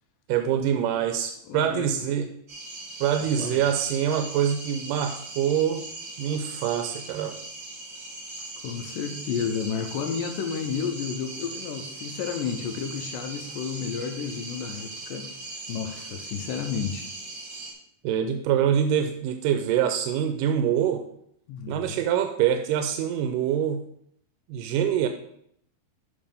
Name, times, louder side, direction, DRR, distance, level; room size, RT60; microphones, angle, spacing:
voice 1, 0.3-2.3 3.0-5.8 6.2-7.4 18.0-21.0 21.7-23.9 24.5-25.1, right 9 dB, 90° right, 7 dB, 2.2 m, -25 dB
voice 2, 1.5-2.1 3.2-3.6 8.6-15.3 15.7-17.1 21.5-22.0, left 7 dB, 90° left, 5 dB, 2.4 m, -32 dB
sound 1, 2.5-17.7, right 2 dB, 40° right, 1.6 m, -39 dB
7.0 x 5.6 x 5.3 m, 0.71 s
omnidirectional pair, 3.8 m